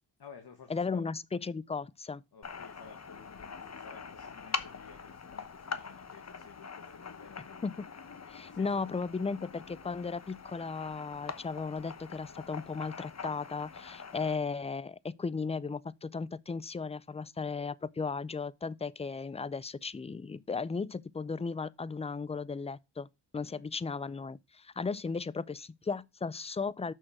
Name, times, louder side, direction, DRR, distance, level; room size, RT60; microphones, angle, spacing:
voice 1, 0.2-1.0 2.3-7.6 8.5-8.9 23.3-23.7, left 6 dB, 55° left, 1.5 m, -54 dB
voice 2, 0.7-2.2 7.6-7.9 8.3-23.1 23.3-26.9, left 4 dB, 15° left, 0.4 m, -36 dB
sound 1, 2.4-14.4, left 5 dB, 35° left, 1.0 m, -43 dB
6.3 x 6.3 x 4.8 m
cardioid pair, 55°, 44 cm